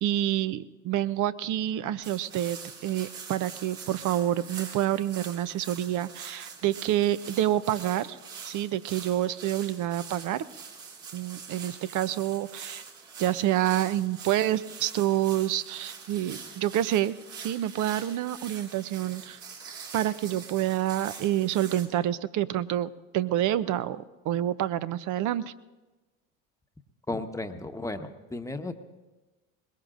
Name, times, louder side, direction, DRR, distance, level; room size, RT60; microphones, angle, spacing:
voice 1, 0.0-8.2 8.4-10.4 11.1-12.8 13.2-17.1 17.4-19.4 19.9-25.5, right 12 dB, 50° right, 15 dB, 0.7 m, -28 dB
walk through leaves, 2.0-21.9, right 6 dB, 75° right, 3.2 m, -44 dB
voice 2, 27.1-28.7, left 2 dB, 10° left, 7 dB, 1.1 m, -34 dB
22.0 x 20.5 x 2.6 m, 1.2 s
hypercardioid pair, 75°, 40 cm